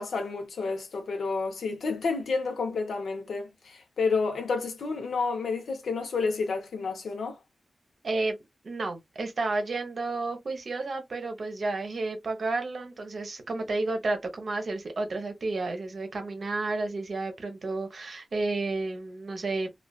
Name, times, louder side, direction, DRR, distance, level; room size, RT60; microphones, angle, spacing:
voice 1, 0.0-7.4, left 4 dB, 85° left, 0.7 m, -30 dB
voice 2, 8.0-8.4 8.6-19.7, right 3 dB, 65° right, 0.7 m, -31 dB
2.4 x 2.3 x 2.2 m
cardioid pair, 50°, 0 cm